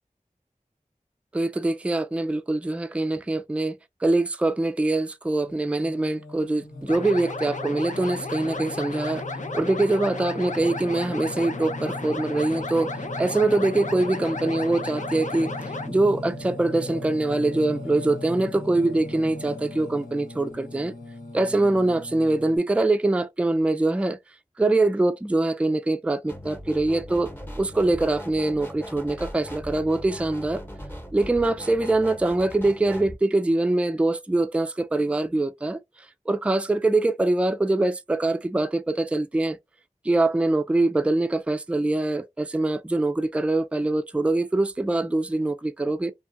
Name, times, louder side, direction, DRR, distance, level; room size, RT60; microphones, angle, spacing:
voice 1, 1.3-9.2 9.5-12.9 13.2-15.5 15.9-20.9 21.3-24.2 24.6-27.3 27.6-30.6 31.1-35.8 36.3-39.6 40.0-46.1, right 2 dB, 10° right, 0.3 m, -23 dB
Singing, 5.4-22.6, left 2 dB, 85° left, 1.2 m, -38 dB
sound 1, 6.9-15.9, left 3 dB, 65° left, 0.5 m, -34 dB
sound 2, 26.3-33.1, equal, 15° left, 1.0 m, -39 dB
2.8 x 2.4 x 2.6 m
wide cardioid pair, 45°, 14 cm